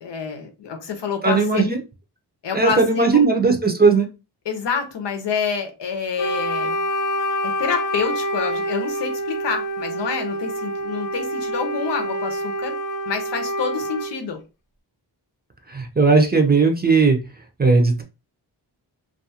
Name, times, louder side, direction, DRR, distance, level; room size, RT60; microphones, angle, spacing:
voice 1, 0.0-1.7 2.4-3.3 4.5-6.8 7.4-12.7 13.1-14.4, left 6 dB, 80° left, 6 dB, 0.7 m, -27 dB
voice 2, 1.2-1.8 2.5-4.1 15.7-17.2 17.6-18.0, right 4 dB, 25° right, 4 dB, 0.5 m, -17 dB
Wind instrument woodwind instrument, 6.2-14.2, equal, 50° left, 0.5 m, -26 dB
2.4 x 2.3 x 2.7 m, 0.29 s
wide cardioid pair, 100°, 42 cm